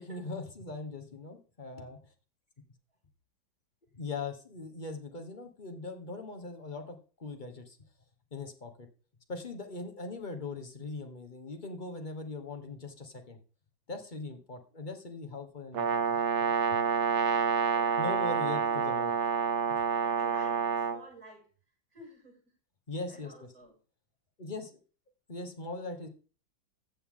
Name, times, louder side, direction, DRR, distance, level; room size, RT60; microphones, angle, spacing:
voice 1, 0.0-2.0 3.9-7.8 8.3-8.7 9.3-13.4 13.9-16.8 18.0-19.1 22.9-23.5 24.4-24.8 25.3-26.1, left 3 dB, 30° left, 5 dB, 1.2 m, -40 dB
Brass instrument, 15.7-21.0, right 6 dB, 65° right, 1.5 m, -28 dB
voice 2, 17.7-19.0 20.0-21.4 21.9-22.5 23.1-23.7, right 1 dB, 50° right, -4 dB, 7.5 m, -52 dB
15.0 x 6.8 x 3.8 m, 0.36 s
omnidirectional pair, 2.1 m